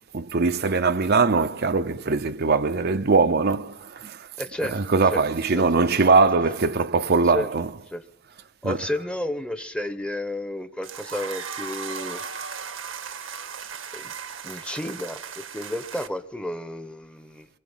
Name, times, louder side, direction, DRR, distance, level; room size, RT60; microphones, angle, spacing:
voice 1, 0.1-4.3 4.7-7.7 8.6-8.8, right 4 dB, 55° right, 0.8 m, -21 dB
voice 2, 4.4-4.8 5.1-5.2 5.5-5.6 7.3-7.5 7.9-8.0 8.6-12.2 13.9-14.0 14.4-17.5, left 1 dB, 5° left, 1.1 m, -31 dB
sound 1, 10.8-16.1, right 6 dB, 90° right, 1.6 m, -36 dB
23.5 x 21.0 x 7.4 m
head